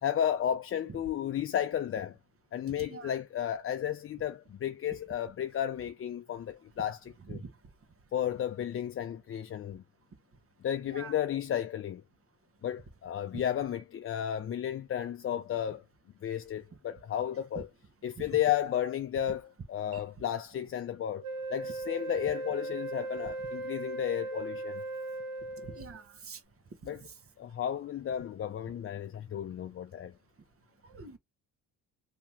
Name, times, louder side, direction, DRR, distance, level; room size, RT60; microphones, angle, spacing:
voice 1, 0.0-2.2 2.5-7.4 8.1-9.8 10.6-12.0 12.6-15.8 16.2-17.7 18.0-21.2 21.5-24.8 26.8-27.0 27.4-30.1, left 10 dB, 40° left, 0.5 m, -33 dB
Wind instrument woodwind instrument, 21.2-26.0, right 2 dB, 75° right, 0.9 m, -38 dB
voice 2, 25.7-26.4 30.9-31.2, right 4 dB, 40° right, 1.1 m, -44 dB
2.9 x 2.8 x 3.5 m
cardioid pair, 95°, 34 cm